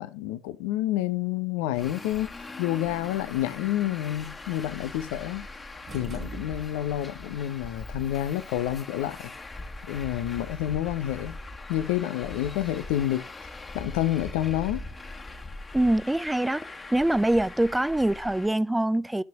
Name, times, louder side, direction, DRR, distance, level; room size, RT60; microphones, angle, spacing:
voice 1, 0.0-2.3 2.6-5.5 5.9-9.3 9.9-11.4 11.7-13.5 13.7-14.8, left 13 dB, 80° left, 0.7 m, -29 dB
Traffic noise roadway noise, 1.7-18.5, left 2 dB, 30° left, 1.6 m, -41 dB
sound 1, 5.9-7.1, right 3 dB, 40° right, 1.5 m, -41 dB
voice 2, 15.7-16.6 16.9-19.2, right 1 dB, 10° right, 0.5 m, -24 dB
12.5 x 5.9 x 3.6 m
hypercardioid pair, 50°, 0 cm